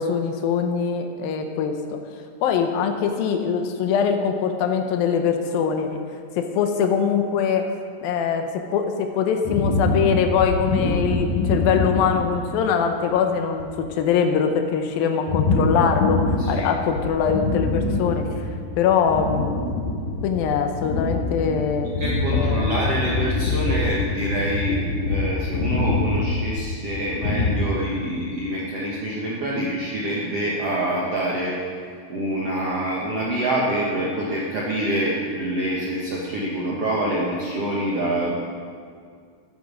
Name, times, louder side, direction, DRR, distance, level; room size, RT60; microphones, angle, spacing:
voice 1, 0.0-1.7 2.4-6.0 6.4-7.7 8.0-16.2 16.5-18.3 18.8-19.5 20.2-21.9 22.3-22.7, left 7 dB, 75° left, 6 dB, 2.3 m, -22 dB
sound 1, 9.5-12.5 13.0-13.1 13.5-13.9 15.3-16.7 17.0-18.7 19.0-27.6, left 3 dB, 60° left, 2.3 m, -24 dB
voice 2, 16.4-16.7 22.0-31.6 32.1-38.5, right 1 dB, 75° right, -5 dB, 1.4 m, -26 dB
13.5 x 10.0 x 5.0 m, 2.2 s
omnidirectional pair, 4.8 m